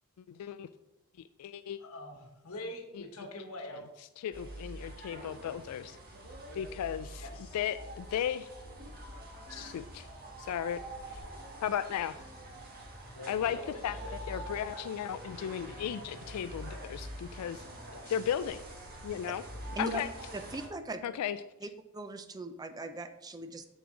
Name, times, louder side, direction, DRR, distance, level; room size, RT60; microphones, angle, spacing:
voice 1, 0.3-0.7 1.4-1.8 2.9-3.0 4.2-6.0 6.5-7.2 7.5-8.5 9.5-10.1 10.4-10.8 11.1-11.2 11.6-12.1 13.3-14.0 14.3-17.6 18.1-18.6 19.0-19.4 19.8-20.1 21.0-21.4, left 9 dB, 90° left, 11 dB, 0.3 m, -35 dB
voice 2, 1.8-3.9 7.2-7.6 13.2-14.1 17.9-18.2, left 1 dB, 70° left, 4 dB, 1.2 m, -44 dB
sound 1, 4.3-20.7, right 1 dB, 40° right, 1.5 m, -45 dB
voice 3, 20.3-21.0 21.6-23.7, right 2 dB, 15° right, 9 dB, 0.4 m, -39 dB
7.3 x 6.9 x 3.7 m, 0.97 s
head